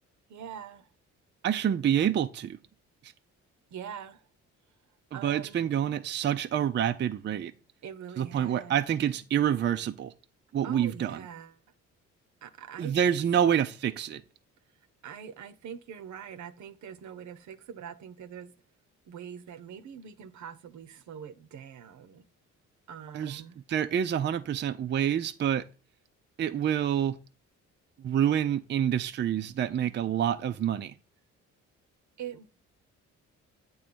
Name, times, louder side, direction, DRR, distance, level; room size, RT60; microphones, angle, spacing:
voice 1, 0.3-0.9 3.7-4.2 5.1-5.7 7.8-8.8 10.6-11.5 12.4-13.2 15.0-18.5 19.1-22.2 22.9-23.6 32.2-32.5, right 8 dB, 70° right, 0.8 m, -43 dB
voice 2, 1.4-2.6 3.0-3.1 5.1-7.5 8.2-10.1 10.5-11.2 12.8-14.2 23.1-23.4 23.7-25.7 26.4-27.2 28.0-30.9, right 9 dB, 35° right, 0.5 m, -27 dB
8.8 x 3.1 x 6.1 m
cardioid pair, 90°, 30 cm